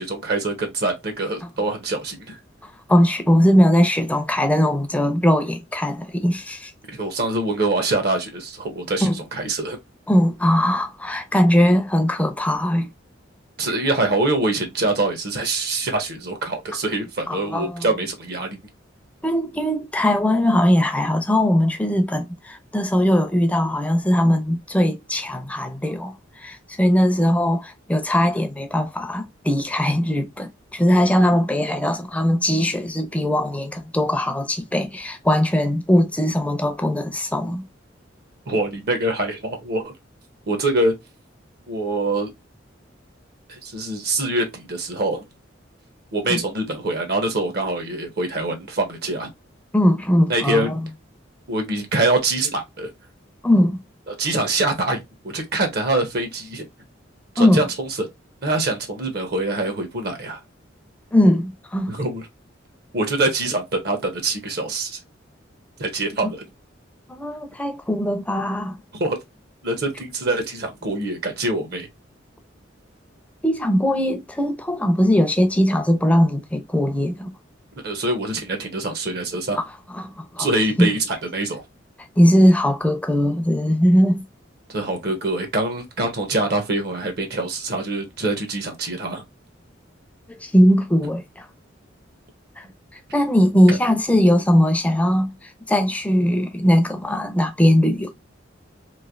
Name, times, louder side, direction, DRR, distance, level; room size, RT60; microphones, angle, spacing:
voice 1, 0.0-2.4 6.9-9.8 13.6-18.6 38.5-39.9 40.5-40.9 41.7-42.3 43.5-45.2 46.1-49.3 50.3-50.8 51.5-52.9 54.1-56.7 57.3-58.1 58.4-60.4 61.9-62.3 62.9-65.0 65.8-66.4 68.9-69.2 69.6-71.9 77.8-79.6 80.4-81.6 84.7-89.2 93.7-93.8, right 2 dB, 55° right, 0.8 m, -24 dB
voice 2, 2.9-6.7 9.0-9.2 10.1-12.9 17.3-17.8 19.2-37.6 46.3-46.4 49.7-50.8 53.4-53.8 57.4-57.6 61.1-61.9 66.2-66.3 67.1-68.8 73.4-77.3 79.9-80.5 80.8-80.9 82.2-84.2 90.3-91.5 92.6-92.7 93.1-98.1, equal, 5° left, 0.5 m, -20 dB
3.2 x 2.5 x 2.5 m
head